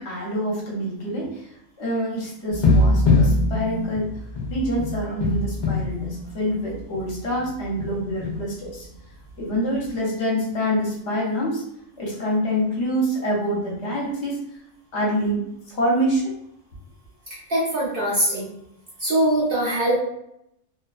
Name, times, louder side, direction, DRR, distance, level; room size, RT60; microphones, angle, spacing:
voice 1, 0.0-1.5 1.8-4.2 4.5-8.9 9.4-11.6 12.0-14.4 14.9-16.3, equal, 60° left, -4 dB, 1.0 m, -26 dB
sound 1, 2.5-7.1 7.4-7.5 7.8-8.5 9.9-10.0, left 2 dB, 75° left, 0.4 m, -22 dB
voice 2, 17.3-18.5 19.0-19.9, right 1 dB, 50° right, -7 dB, 0.7 m, -22 dB
2.6 x 2.1 x 2.3 m, 0.78 s
omnidirectional pair, 1.4 m